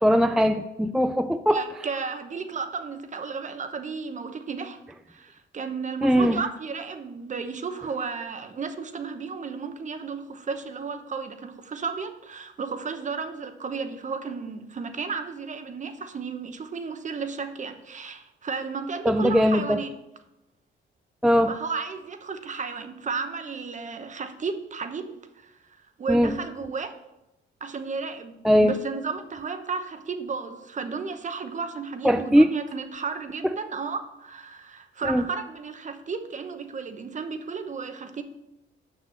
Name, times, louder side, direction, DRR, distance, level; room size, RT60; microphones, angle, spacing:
voice 1, 0.0-1.6 6.0-6.4 19.1-19.8 21.2-21.5 26.1-26.3 28.4-28.8 32.0-32.5 33.4-33.5 35.0-35.2, equal, ahead, 9 dB, 0.3 m, -20 dB
voice 2, 1.5-4.8 5.1-19.9 21.5-25.5 26.0-27.0 27.6-28.3 28.6-38.2, right 5 dB, 40° right, 9 dB, 0.9 m, -33 dB
7.0 x 6.1 x 6.1 m, 0.93 s
cardioid pair, 90°, 20 cm